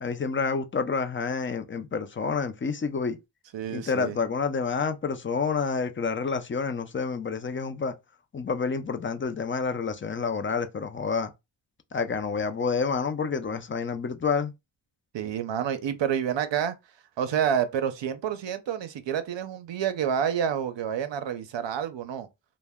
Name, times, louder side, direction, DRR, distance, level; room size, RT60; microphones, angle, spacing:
voice 1, 0.0-3.2 3.7-7.9 8.3-11.3 11.9-14.5, left 5 dB, 30° left, 0.4 m, -28 dB
voice 2, 3.5-4.2 15.1-16.7 17.2-22.3, right 8 dB, 70° right, 0.6 m, -28 dB
2.1 x 2.1 x 3.4 m
cardioid pair, 60°, 46 cm